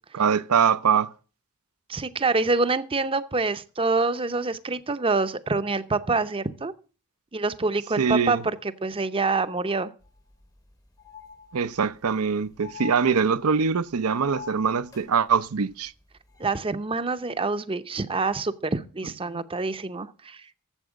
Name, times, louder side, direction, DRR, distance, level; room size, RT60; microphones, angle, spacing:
voice 1, 0.1-1.1 8.0-8.4 11.5-15.9 19.3-19.4, right 6 dB, 75° right, 0.6 m, -23 dB
voice 2, 1.9-6.7 7.3-9.9 16.4-20.4, right 3 dB, 25° right, 0.7 m, -26 dB
sound 1, 10.0-10.1 10.4-10.5 11.0-11.9 12.6-13.7 14.1-15.1 16.3-16.5, left 6 dB, 15° left, 0.8 m, -44 dB
11.5 x 7.8 x 6.3 m
head